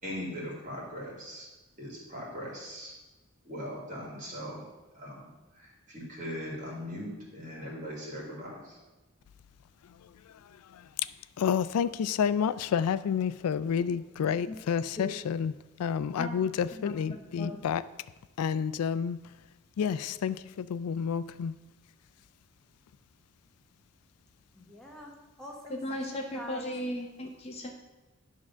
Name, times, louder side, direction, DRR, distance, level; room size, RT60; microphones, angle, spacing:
voice 1, 0.0-1.5 1.8-2.9 3.5-4.6 4.9-8.8, equal, 35° right, -3 dB, 2.5 m, -40 dB
voice 2, 10.0-15.5 15.8-17.8 18.4-19.2 19.8-21.5, left 7 dB, 85° left, 16 dB, 0.3 m, -30 dB
voice 3, 16.7-17.5 25.7-27.7, left 1 dB, 25° left, 1 dB, 0.7 m, -37 dB
voice 4, 24.5-26.7, equal, ahead, -2 dB, 1.1 m, -46 dB
10.5 x 3.7 x 6.1 m, 1.1 s
head